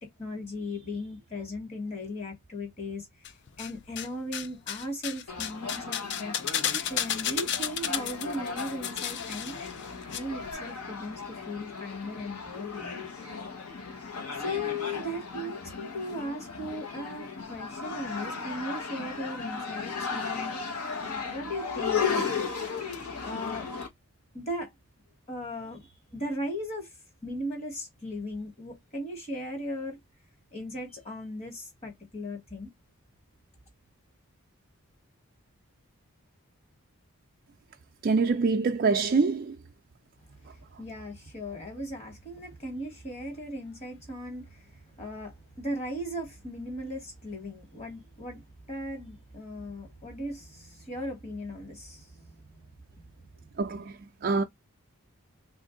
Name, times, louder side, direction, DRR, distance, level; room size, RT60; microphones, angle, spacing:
voice 1, 0.0-3.1 3.6-6.4 6.9-9.6 10.1-13.1 14.4-20.5 21.0-22.3 23.2-23.7 24.3-24.7 25.3-26.9 27.2-30.0 30.5-32.7 40.4-52.5, left 1 dB, 30° left, 1.5 m, -37 dB
sound 1, 3.2-4.1 4.3-10.2 10.4-10.5, left 9 dB, 50° left, 0.4 m, -32 dB
sound 2, 5.3-23.9, left 5 dB, 90° left, 1.2 m, -36 dB
voice 2, 38.0-39.6 53.6-54.4, right 4 dB, 45° right, 0.4 m, -25 dB
3.5 x 2.5 x 3.7 m
head